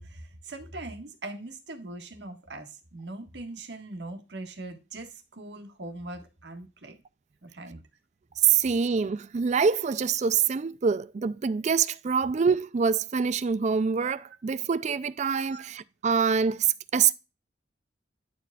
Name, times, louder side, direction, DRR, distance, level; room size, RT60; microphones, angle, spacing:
voice 1, 0.0-7.0 7.4-7.8 15.5-15.7, right 2 dB, 65° right, 1.5 m, -41 dB
voice 2, 8.4-17.1, right 6 dB, 40° right, 0.3 m, -25 dB
12.0 x 4.8 x 2.3 m
head